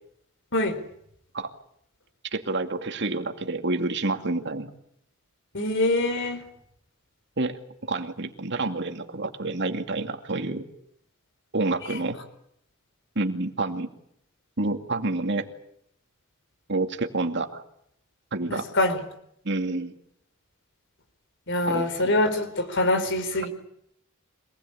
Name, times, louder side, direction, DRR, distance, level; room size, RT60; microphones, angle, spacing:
voice 1, 2.3-4.7 7.4-7.6 7.8-10.6 11.5-12.2 13.2-13.9 14.6-15.5 16.7-17.6 18.3-18.7 19.4-19.9 21.7-22.1, right 2 dB, 55° right, 6 dB, 2.4 m, -28 dB
voice 2, 5.5-6.4 18.5-19.0 21.5-23.5, left 2 dB, 60° left, 9 dB, 4.3 m, -24 dB
26.0 x 20.0 x 8.7 m, 0.73 s
head